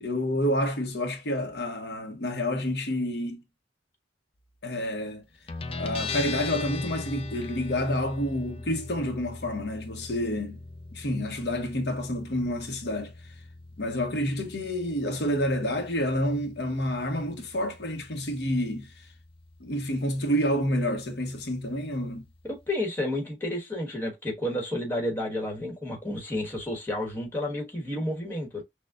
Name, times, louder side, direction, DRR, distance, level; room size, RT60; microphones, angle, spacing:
voice 1, 0.0-3.4 4.6-5.3 5.7-10.6 10.9-13.3 13.8-19.1 19.6-22.3, equal, 70° left, 0.9 m, -29 dB
Guitar, 5.5-22.7, left 3 dB, 30° left, 0.5 m, -41 dB
voice 2, 22.4-28.6, left 1 dB, 10° left, 1.3 m, -31 dB
6.2 x 2.2 x 2.3 m
head